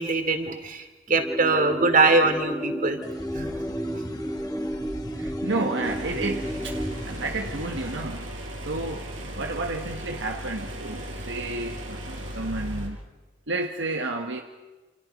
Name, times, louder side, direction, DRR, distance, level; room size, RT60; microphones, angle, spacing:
voice 1, 0.0-3.0 3.3-3.6, right 3 dB, 45° right, 7 dB, 2.7 m, -22 dB
sound 1, 1.1-7.1, equal, ahead, 2.0 m, -32 dB
sound 2, 3.0-8.0, equal, 20° left, 2.0 m, -40 dB
voice 2, 5.1-6.8 7.0-8.3 8.6-9.1 9.4-13.0 13.5-14.4, right 2 dB, 65° right, 3 dB, 1.5 m, -31 dB
sound 3, 5.8-12.9, right 1 dB, 90° right, 6.4 m, -36 dB
29.0 x 27.5 x 5.3 m, 1.2 s
head